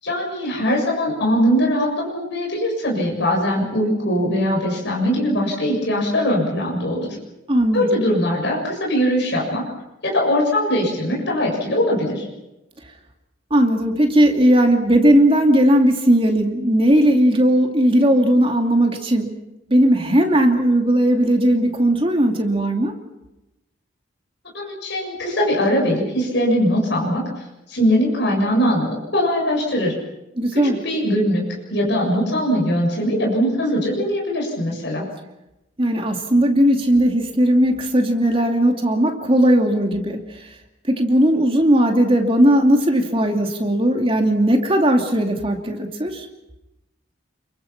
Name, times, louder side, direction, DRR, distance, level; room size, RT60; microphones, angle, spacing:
voice 1, 0.0-7.1 7.7-9.6 10.0-12.2 24.5-27.2 27.7-29.9 30.5-35.1, equal, 55° left, -1 dB, 7.1 m, -21 dB
voice 2, 7.5-7.9 13.5-19.3 19.7-22.9 30.4-30.8 35.8-40.2 40.9-46.3, right 1 dB, 25° right, 3 dB, 2.6 m, -17 dB
28.5 x 23.0 x 6.0 m, 0.94 s
head